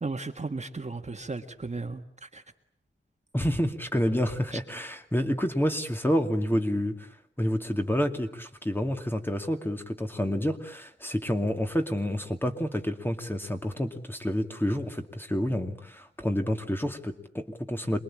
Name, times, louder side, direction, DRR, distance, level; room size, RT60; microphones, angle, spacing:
voice 1, 0.0-2.4 4.5-4.6, right 3 dB, 35° right, 6 dB, 1.8 m, -35 dB
voice 2, 3.3-7.1 7.4-18.0, equal, 10° left, 5 dB, 2.5 m, -29 dB
27.5 x 22.0 x 8.8 m, 0.65 s
wide cardioid pair, 110°, 21 cm